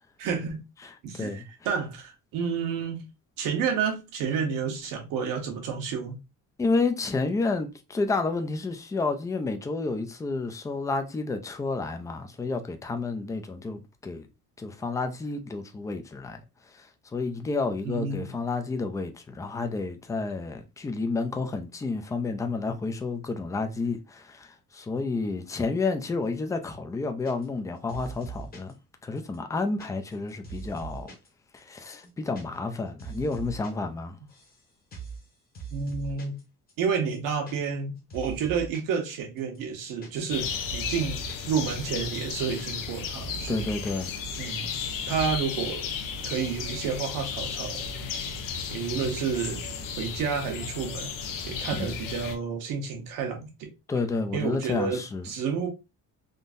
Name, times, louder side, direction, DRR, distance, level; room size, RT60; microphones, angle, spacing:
voice 1, 0.2-0.6 1.0-3.0 3.4-6.2 17.8-18.3 35.7-36.4 36.8-43.7 44.4-45.9 46.2-48.4 48.7-49.6 50.0-53.7 54.3-55.7, right 6 dB, 80° right, 1.2 m, -30 dB
voice 2, 0.8-1.4 6.6-14.3 14.6-16.4 16.7-28.8 29.0-31.1 31.5-34.2 43.5-44.1 51.8-52.0 53.9-55.3, left 3 dB, 10° left, 0.3 m, -30 dB
sound 1, 27.2-27.6 27.9-28.7 29.2-31.3 31.6-31.7 31.9-32.4 32.7-33.7 34.0-34.6 34.9-35.2 35.5-36.4 36.7-36.8 37.0-37.8 38.1-38.9 39.4-41.5 41.8-41.9 42.1-42.9 43.2-43.9 44.2-44.8 45.1-45.4, right 5 dB, 30° left, 0.9 m, -42 dB
sound 2, 40.3-52.3, left 6 dB, 85° left, 0.8 m, -34 dB
3.7 x 2.6 x 2.5 m
cardioid pair, 160°, 32 cm